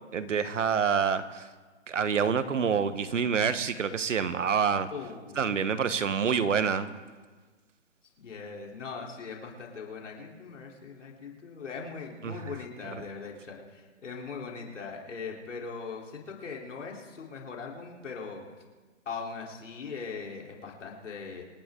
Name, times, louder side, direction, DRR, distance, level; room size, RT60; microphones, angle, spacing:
voice 1, 0.1-1.4 1.9-4.9 5.4-6.9 12.2-12.4, right 6 dB, 90° right, 12 dB, 1.3 m, -27 dB
voice 2, 4.9-5.7 8.2-18.4 19.1-21.4, left 5 dB, 80° left, -1 dB, 3.7 m, -40 dB
26.5 x 11.0 x 3.8 m, 1.4 s
hypercardioid pair, 170°, 36 cm